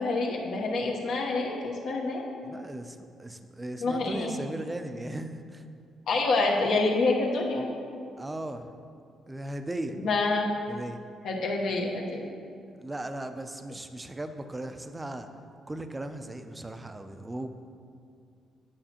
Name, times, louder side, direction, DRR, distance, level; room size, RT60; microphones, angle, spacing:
voice 1, 0.0-2.2 3.8-4.3 6.1-7.7 10.0-10.5 11.2-12.2, left 3 dB, 70° left, -1 dB, 1.0 m, -27 dB
voice 2, 2.4-5.6 8.2-8.7 9.3-10.0 10.7-11.0 12.8-15.3 15.7-17.6, right 1 dB, 15° right, 8 dB, 0.4 m, -37 dB
8.8 x 6.0 x 2.9 m, 2.4 s
cardioid pair, 90°, 0 cm